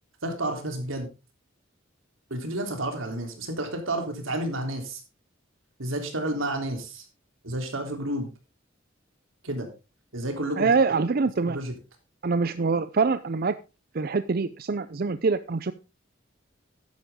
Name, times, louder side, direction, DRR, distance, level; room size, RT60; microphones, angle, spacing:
voice 1, 0.2-1.1 2.3-5.0 5.8-7.1 7.4-8.3 9.4-9.7 10.1-10.7 11.4-11.7, right 1 dB, 85° right, 4 dB, 3.5 m, -30 dB
voice 2, 10.6-11.6 12.2-13.5 13.9-15.7, right 4 dB, 50° right, 13 dB, 0.5 m, -24 dB
12.5 x 10.5 x 3.7 m, 0.28 s
head